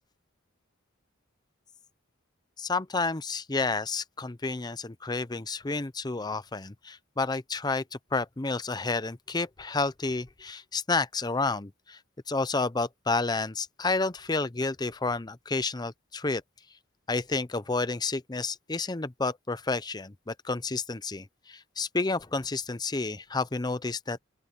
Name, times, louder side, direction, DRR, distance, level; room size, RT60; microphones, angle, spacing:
voice 1, 2.6-7.8 8.1-12.0 12.3-16.4 17.1-24.2, left 3 dB, 20° left, 0.6 m, -30 dB
open air
head